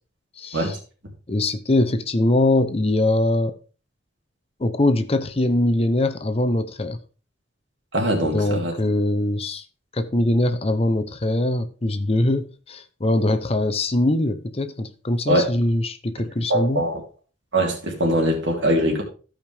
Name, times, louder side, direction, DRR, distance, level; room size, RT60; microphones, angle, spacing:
voice 1, 0.4-0.7 1.3-3.5 4.6-7.0 8.3-9.6 9.9-16.8, left 1 dB, 30° left, 0.7 m, -22 dB
voice 2, 7.9-8.7 15.3-15.5 16.5-17.0 17.5-19.0, right 1 dB, 75° right, 2.9 m, -21 dB
14.5 x 5.2 x 3.4 m
head